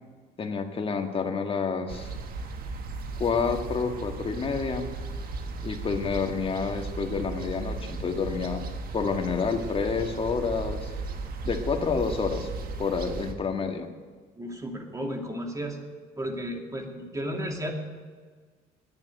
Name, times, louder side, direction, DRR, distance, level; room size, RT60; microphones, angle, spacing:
voice 1, 0.4-2.1 3.2-4.9 5.6-8.6 8.9-10.9 11.4-12.5 12.8-13.9, left 5 dB, 35° left, 4 dB, 1.7 m, -28 dB
sound 1, 1.9-13.3, right 3 dB, 60° right, 1.6 m, -36 dB
voice 2, 14.3-15.8 16.2-17.8, equal, 20° right, 2 dB, 2.4 m, -33 dB
10.5 x 9.7 x 9.4 m, 1.5 s
cardioid pair, 110°, 17 cm